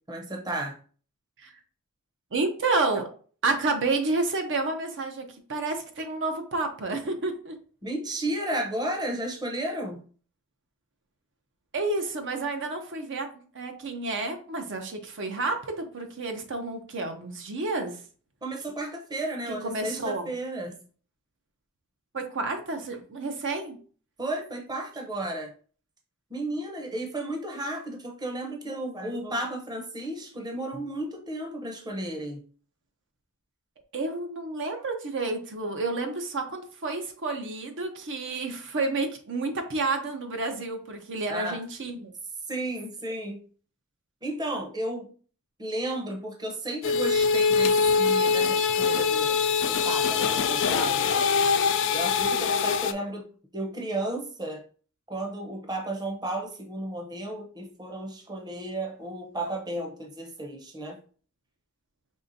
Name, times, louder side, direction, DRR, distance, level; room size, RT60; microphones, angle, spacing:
voice 1, 0.1-0.8 7.8-10.1 18.4-20.8 24.2-25.5 26.3-32.4 41.3-41.6 42.5-43.4 44.2-45.1 45.6-49.4 49.7-51.3 51.9-53.3 53.5-54.6 55.1-61.0, right 1 dB, 20° right, 2 dB, 0.8 m, -33 dB
voice 2, 2.3-3.1 3.4-7.5 11.7-13.3 13.5-18.0 19.6-20.3 22.1-23.8 33.9-42.1, right 3 dB, 60° right, 5 dB, 0.7 m, -30 dB
sound 1, 46.8-52.9, left 5 dB, 60° left, 0.4 m, -23 dB
5.4 x 3.3 x 2.6 m, 0.42 s
head